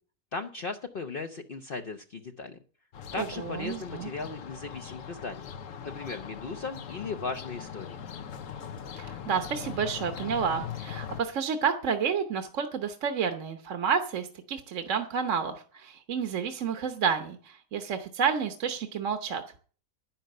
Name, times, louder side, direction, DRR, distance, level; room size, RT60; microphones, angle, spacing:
voice 1, 0.3-2.6 3.1-5.5 5.8-8.0, left 4 dB, 50° left, 6 dB, 0.9 m, -37 dB
sound 1, 2.9-11.2, left 8 dB, 70° left, 1.2 m, -41 dB
voice 2, 3.2-4.1 9.0-19.4, right 6 dB, 65° right, 7 dB, 1.3 m, -30 dB
10.5 x 10.0 x 6.5 m, 0.42 s
omnidirectional pair, 1.4 m